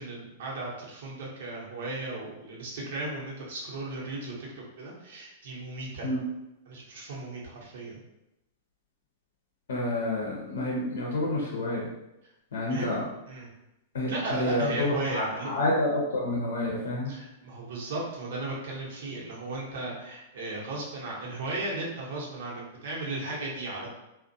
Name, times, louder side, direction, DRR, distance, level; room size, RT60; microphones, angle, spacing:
voice 1, 0.0-6.1 6.7-8.0 12.7-12.9 13.3-13.5 14.1-15.5 17.1-23.9, right 2 dB, 65° right, -4 dB, 0.9 m, -36 dB
voice 2, 9.7-11.9 12.5-13.0 13.9-17.1, left 1 dB, 75° left, -3 dB, 0.6 m, -29 dB
2.4 x 2.1 x 2.6 m, 0.90 s
hypercardioid pair, 110°, 0 cm